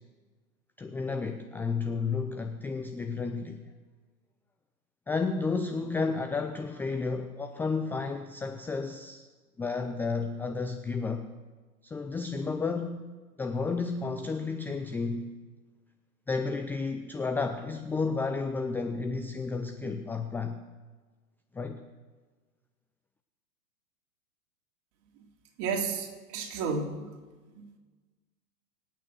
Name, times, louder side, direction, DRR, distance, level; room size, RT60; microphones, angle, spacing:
voice 1, 0.8-3.6 5.1-9.3 9.6-11.3 11.8-13.1 13.4-15.3 16.3-20.6 21.5-21.8, left 4 dB, 5° left, 7 dB, 0.4 m, -32 dB
voice 2, 25.6-27.1 27.5-27.8, right 5 dB, 40° right, 1 dB, 3.4 m, -32 dB
25.0 x 9.1 x 6.2 m, 1.3 s
figure-of-eight pair, 105°, 44 cm